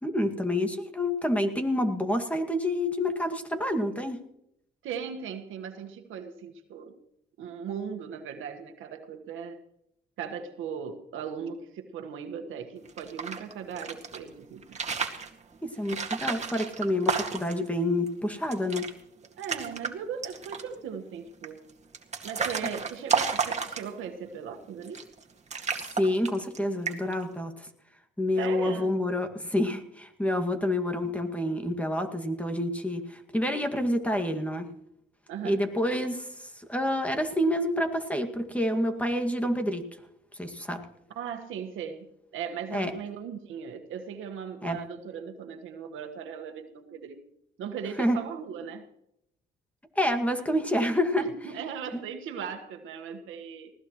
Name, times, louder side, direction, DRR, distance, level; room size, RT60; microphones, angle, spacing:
voice 1, 0.0-4.2 15.6-18.9 26.0-27.7 28.2-34.7 35.4-36.3 36.6-39.8 40.3-40.8 42.7-42.9 44.6-44.8 48.0-48.2 50.0-51.2 51.9-52.0, left 1 dB, 5° left, 5 dB, 2.1 m, -28 dB
voice 2, 4.8-7.0 7.4-9.6 10.2-14.8 19.4-21.6 22.2-25.0 28.4-28.9 35.3-35.6 41.1-47.2 47.6-48.9 51.2-53.7, right 7 dB, 85° right, 5 dB, 1.6 m, -38 dB
sound 1, 12.9-14.2 14.6-15.3 15.9-17.7 18.1-18.2 18.4-18.9 19.2-19.9 20.2-20.8 21.4-24.1 24.8-25.2 25.5-26.6 26.9-27.2, right 5 dB, 35° right, 2.1 m, -31 dB
20.0 x 16.5 x 3.1 m, 0.78 s
cardioid pair, 90°, 20 cm